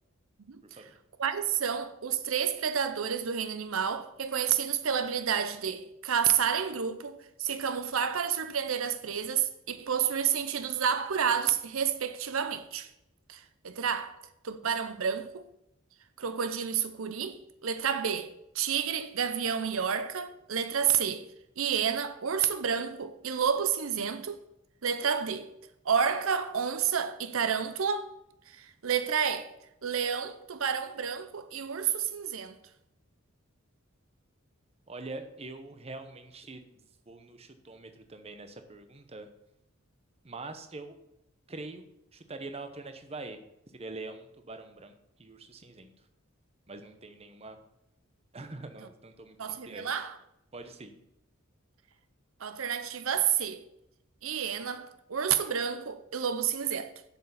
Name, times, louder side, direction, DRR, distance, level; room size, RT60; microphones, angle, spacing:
voice 1, 0.6-1.0 34.9-39.3 40.2-41.0 41.5-41.8 42.1-43.4 43.7-45.9 46.7-47.6 48.3-50.0 50.5-51.0, right 2 dB, 30° right, 0.9 m, -44 dB
voice 2, 1.2-12.9 13.3-14.2 14.4-15.4 16.2-21.3 21.6-24.4 24.8-25.5 25.8-28.1 28.5-29.5 29.8-32.6 49.4-50.1 52.4-53.6 54.2-56.9, right 7 dB, 75° right, 0.7 m, -30 dB
8.2 x 6.7 x 7.1 m
head